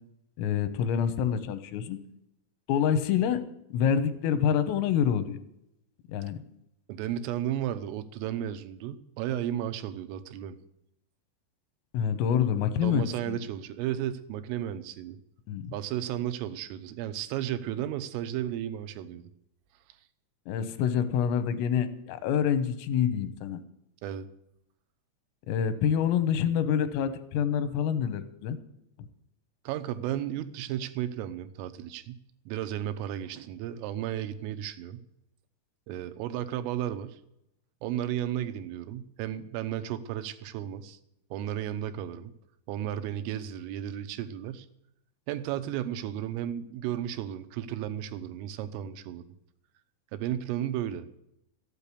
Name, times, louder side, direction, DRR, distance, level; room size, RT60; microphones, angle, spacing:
voice 1, 0.4-2.0 2.7-3.4 3.7-5.4 6.1-6.4 11.9-13.4 15.5-15.7 20.5-23.6 25.5-28.6 29.0-29.1, left 8 dB, 90° left, 11 dB, 3.7 m, -27 dB
voice 2, 6.9-10.6 12.8-15.2 15.7-19.2 24.0-24.3 29.7-35.0 35.9-37.2 37.8-41.0 41.3-42.3 42.7-44.7 45.3-49.2 50.1-51.1, right 11 dB, 85° right, 9 dB, 3.5 m, -34 dB
14.0 x 9.0 x 8.4 m, 0.81 s
omnidirectional pair, 5.8 m